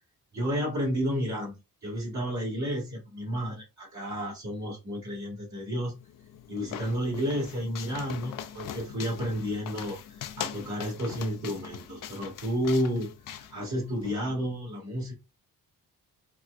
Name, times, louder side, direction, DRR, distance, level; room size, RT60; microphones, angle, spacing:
voice 1, 0.3-6.0 6.5-15.1, equal, 50° right, -3 dB, 2.1 m, -31 dB
sound 1, 6.0-14.1, left 9 dB, 65° left, 0.6 m, -41 dB
4.6 x 2.3 x 2.5 m, 0.28 s
cardioid pair, 70°, 36 cm